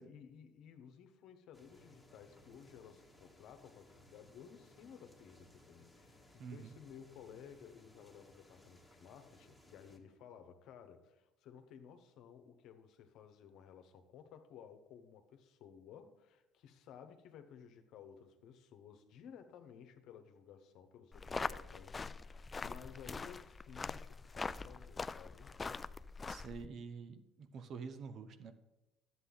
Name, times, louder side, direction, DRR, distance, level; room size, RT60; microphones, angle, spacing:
voice 1, 0.0-25.5, left 8 dB, 65° left, 7 dB, 1.1 m, -56 dB
sound 1, 1.5-10.0, left 1 dB, 5° left, 1.7 m, -63 dB
voice 2, 6.4-6.7 26.3-28.5, right 5 dB, 55° right, 9 dB, 1.0 m, -47 dB
sound 2, 21.1-26.7, left 4 dB, 25° left, 0.3 m, -43 dB
11.0 x 7.9 x 3.9 m, 0.98 s
supercardioid pair, 75°, 0 cm